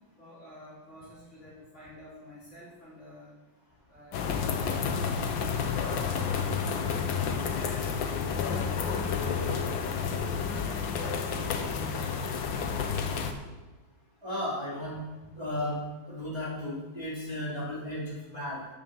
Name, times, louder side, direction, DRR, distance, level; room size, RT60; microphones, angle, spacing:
voice 1, 0.2-3.3 3.9-6.0 7.5-8.8 9.2-9.8 10.6-12.3, equal, 40° left, -7 dB, 3.4 m, -49 dB
sound 1, 4.1-13.3, left 6 dB, 80° left, 1.6 m, -30 dB
voice 2, 14.2-15.0 15.3-15.8 16.1-18.6, left 1 dB, 15° right, -8 dB, 3.2 m, -34 dB
8.7 x 7.5 x 7.0 m, 1.1 s
omnidirectional pair, 2.1 m